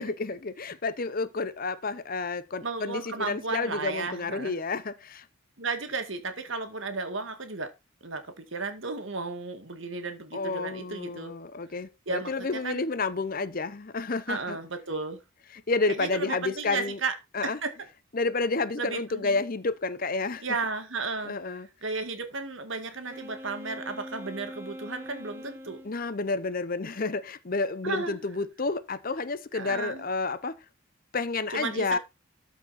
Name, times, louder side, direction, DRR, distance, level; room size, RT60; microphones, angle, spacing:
voice 1, 0.0-5.2 10.3-14.6 15.7-17.0 17.3-17.6 18.1-20.5 21.2-21.7 25.8-30.6 31.1-32.0, left 3 dB, 40° left, 0.7 m, -30 dB
voice 2, 2.6-4.6 5.6-7.7 8.0-11.3 12.1-12.8 14.3-15.2 15.9-17.1 17.4-17.7 18.8-19.4 20.4-21.3 21.8-25.8 27.8-28.2 29.5-30.1 31.5-32.0, right 3 dB, 60° right, 2.0 m, -34 dB
Wind instrument woodwind instrument, 23.0-25.9, equal, 10° right, 1.3 m, -42 dB
13.0 x 4.9 x 4.3 m
head